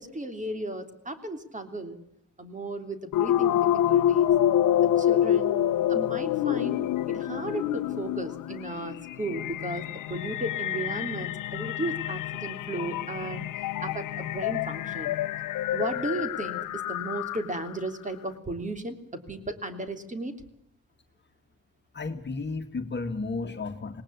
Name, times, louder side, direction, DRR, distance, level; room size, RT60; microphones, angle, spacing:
voice 1, 0.0-2.0 2.4-4.3 5.0-5.6 5.9-6.8 7.1-13.4 13.8-15.2 15.7-20.4, right 2 dB, 25° right, 8 dB, 3.4 m, -35 dB
sound 1, 3.1-17.7, left 11 dB, 85° left, 0.9 m, -27 dB
voice 2, 21.9-24.0, left 3 dB, 35° left, 6 dB, 1.9 m, -33 dB
20.0 x 19.0 x 8.3 m, 0.76 s
cardioid pair, 90°, 31 cm